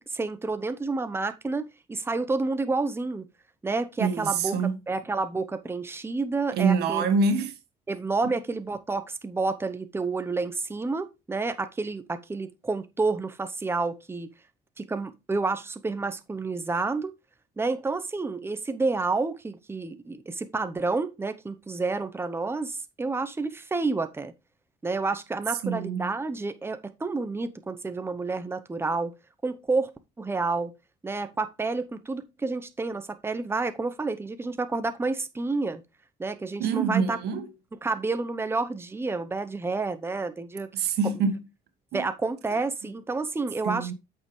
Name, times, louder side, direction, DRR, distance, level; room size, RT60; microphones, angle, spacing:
voice 1, 0.1-3.3 3.6-4.5 4.9-7.1 7.9-14.3 14.8-17.1 17.6-24.3 24.8-29.1 29.4-29.9 30.2-30.7 31.0-35.8 36.2-37.2 37.8-40.7 41.0-41.1 41.9-43.9, right 3 dB, 15° right, 0.9 m, -29 dB
voice 2, 4.0-4.8 6.5-7.6 8.2-8.3 25.6-26.1 36.6-37.5 40.7-41.4 41.9-42.1 42.5-42.6 43.6-43.9, right 5 dB, 75° right, 1.6 m, -26 dB
8.5 x 6.7 x 3.2 m
cardioid pair, 110°, 17 cm